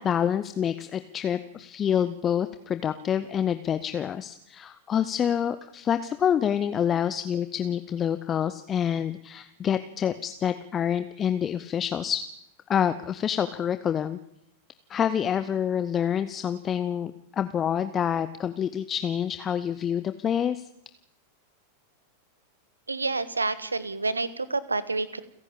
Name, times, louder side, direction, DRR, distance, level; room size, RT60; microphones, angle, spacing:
voice 1, 0.0-12.2 12.7-14.2 14.9-20.7, left 8 dB, 25° left, 12 dB, 0.9 m, -27 dB
voice 2, 22.9-25.2, right 3 dB, 80° right, 17 dB, 1.4 m, -28 dB
29.0 x 11.0 x 8.7 m, 0.77 s
figure-of-eight pair, 90°, 0 cm